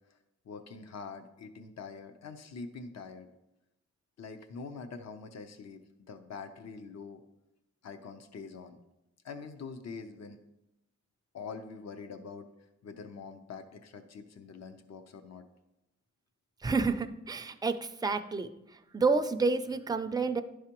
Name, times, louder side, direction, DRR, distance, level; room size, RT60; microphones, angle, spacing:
voice 1, 0.4-3.3 4.2-5.8 6.1-7.2 7.8-8.8 9.2-10.4 11.3-12.5 12.8-15.4, left 5 dB, 60° left, 8 dB, 0.6 m, -44 dB
voice 2, 16.6-18.5 18.9-20.4, right 4 dB, 15° right, 8 dB, 0.3 m, -29 dB
11.5 x 4.8 x 2.9 m, 0.91 s
wide cardioid pair, 150°, 30 cm